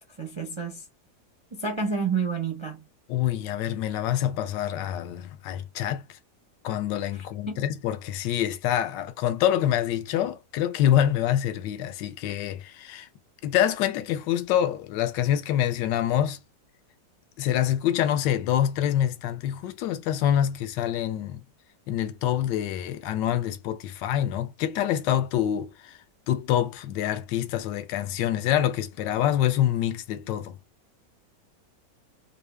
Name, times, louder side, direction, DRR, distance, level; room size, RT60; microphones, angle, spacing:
voice 1, 0.2-0.8 1.5-2.8 7.1-7.6, right 5 dB, 50° right, 0.3 m, -30 dB
voice 2, 3.1-6.2 6.6-13.1 13.4-16.4 17.4-21.4 21.9-26.0 26.3-30.6, left 11 dB, 80° left, 1.3 m, -26 dB
3.4 x 2.6 x 3.2 m
omnidirectional pair, 1.9 m